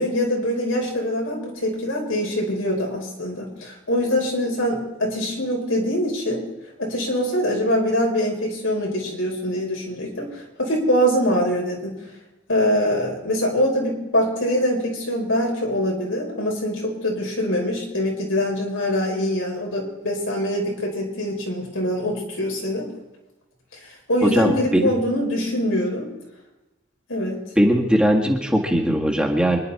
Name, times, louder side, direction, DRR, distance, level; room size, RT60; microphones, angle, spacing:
voice 1, 0.0-6.4 6.8-11.9 12.5-22.9 24.1-26.1 27.1-27.4, equal, 85° left, -1 dB, 5.2 m, -23 dB
voice 2, 24.2-24.9 27.6-29.6, equal, 5° right, -1 dB, 1.9 m, -19 dB
26.0 x 11.0 x 4.3 m, 1.0 s
head